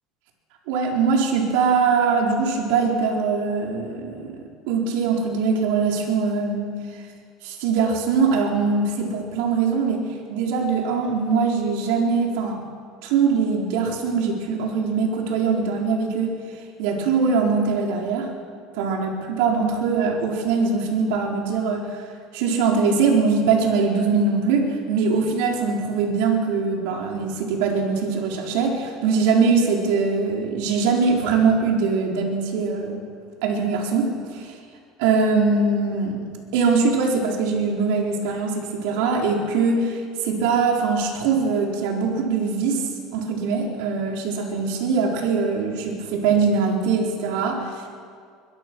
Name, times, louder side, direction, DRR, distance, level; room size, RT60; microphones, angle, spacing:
voice 1, 0.7-4.3 4.7-6.7 7.4-12.6 13.0-16.3 16.8-18.3 18.8-21.8 22.3-33.0 33.4-34.5 35.0-36.2 36.5-47.7, right 5 dB, 80° right, 0 dB, 4.4 m, -22 dB
24.0 x 22.0 x 6.4 m, 2.2 s
cardioid pair, 135°, 0 cm